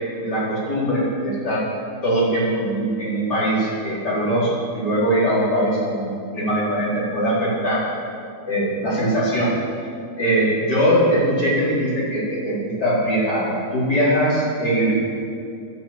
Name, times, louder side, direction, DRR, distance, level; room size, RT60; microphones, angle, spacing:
voice 1, 0.2-1.6 2.0-7.9 8.5-9.5 10.2-14.9, right 1 dB, 60° left, -8 dB, 4.9 m, -21 dB
11.5 x 8.9 x 8.9 m, 2.4 s
omnidirectional pair, 2.1 m